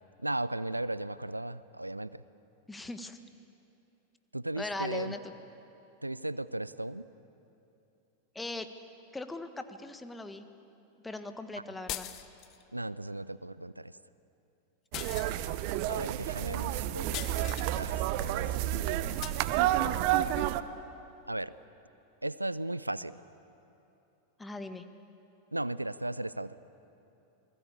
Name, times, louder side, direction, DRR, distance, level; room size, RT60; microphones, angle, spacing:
voice 1, 0.2-2.2 4.3-5.2 6.0-7.1 12.7-14.0 15.9-17.2 17.7-19.3 21.3-21.5 22.2-23.2 25.5-26.6, right 1 dB, 85° right, 18 dB, 0.6 m, -36 dB
voice 2, 2.7-3.2 4.6-5.2 8.3-8.7 9.1-10.5 11.0-12.1 24.4-24.8, left 2 dB, 10° left, 9 dB, 1.5 m, -39 dB
sound 1, 11.9-12.6 14.9-15.7 17.1-17.7 19.2-19.5, left 13 dB, 35° left, 1.0 m, -40 dB
sound 2, 14.9-20.6, right 13 dB, 45° right, 0.9 m, -30 dB
28.5 x 20.5 x 8.6 m, 2.9 s
figure-of-eight pair, 90°, 0 cm